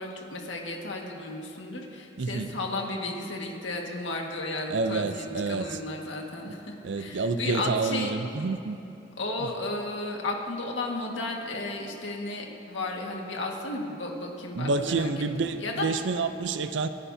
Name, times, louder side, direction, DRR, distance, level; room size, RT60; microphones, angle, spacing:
voice 1, 0.0-8.1 9.2-15.1 15.4-15.9, left 2 dB, 85° left, 0 dB, 1.7 m, -34 dB
voice 2, 2.2-2.6 4.7-5.8 6.8-8.8 9.4-9.5 14.5-16.9, right 3 dB, 70° right, 11 dB, 0.5 m, -28 dB
28.0 x 10.0 x 2.8 m, 2.9 s
head